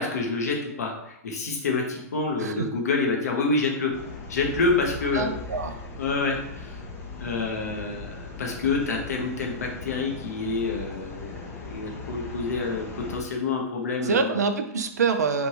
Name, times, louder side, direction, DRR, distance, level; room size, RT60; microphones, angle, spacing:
voice 1, 0.0-3.9 4.3-5.3 6.0-6.8 7.2-14.3, left 3 dB, 70° left, 1 dB, 0.8 m, -27 dB
sound 1, 3.9-13.2, left 4 dB, 25° left, 0.7 m, -39 dB
voice 2, 5.1-5.9 14.0-15.5, right 5 dB, 75° right, 8 dB, 0.4 m, -25 dB
3.2 x 2.7 x 2.7 m, 0.81 s
figure-of-eight pair, 105°, 9 cm